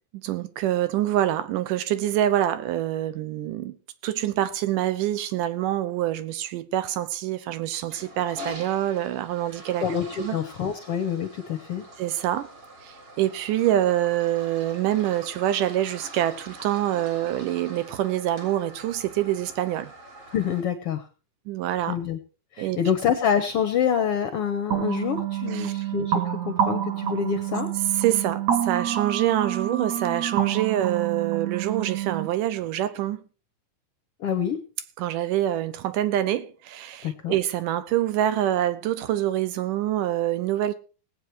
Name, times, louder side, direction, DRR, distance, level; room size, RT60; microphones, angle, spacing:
voice 1, 0.2-3.8 4.0-9.9 10.2-10.4 12.0-12.5 12.8-19.9 21.5-22.0 22.6-22.8 25.5-25.7 28.0-33.2 35.0-40.8, right 12 dB, 75° right, 2.5 m, -26 dB
Toilet flush, 7.7-20.6, right 1 dB, 40° right, 4.8 m, -44 dB
voice 2, 9.8-11.8 20.3-21.0 21.9-22.2 22.6-27.7 34.2-34.6 37.0-37.4, left 8 dB, 70° left, 1.4 m, -26 dB
sound 1, 24.7-32.3, right 10 dB, 60° right, 2.9 m, -28 dB
18.5 x 8.6 x 4.5 m
omnidirectional pair, 3.9 m